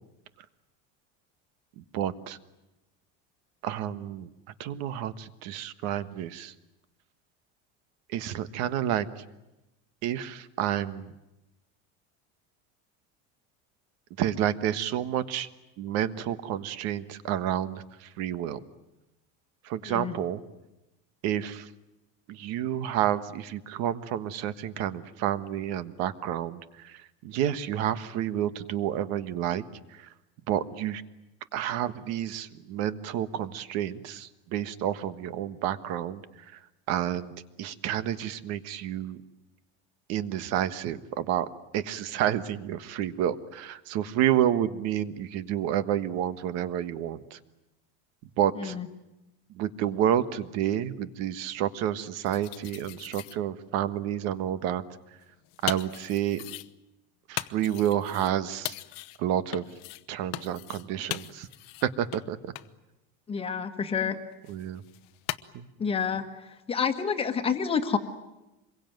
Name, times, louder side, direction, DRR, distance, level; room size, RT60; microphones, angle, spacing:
voice 1, 1.9-2.4 3.6-4.3 4.6-6.5 8.1-9.1 10.0-11.1 14.2-15.5 15.8-17.8 18.2-18.6 19.7-20.4 21.2-21.7 22.3-27.0 27.2-29.6 30.5-31.0 31.5-36.2 36.9-37.3 37.6-39.2 40.1-41.5 41.7-47.4 48.4-48.7 49.6-54.8 55.6-56.4 57.3-58.7 59.2-59.6 60.1-61.5 61.8-62.5 64.5-64.8 65.5-65.7, right 11 dB, 60° right, 13 dB, 1.4 m, -29 dB
sound 1, 52.3-53.4 55.1-56.7 57.4-58.3 58.7-59.2 59.5-60.0 60.3-60.9 61.1-61.9 62.1-62.2 62.6-62.7 64.4-65.4, left 19 dB, 70° left, 1.0 m, -38 dB
voice 2, 63.3-64.2 65.8-66.2 66.7-68.0, left 6 dB, 20° left, 7 dB, 1.5 m, -28 dB
26.5 x 22.5 x 9.3 m, 0.97 s
cardioid pair, 175°, 30 cm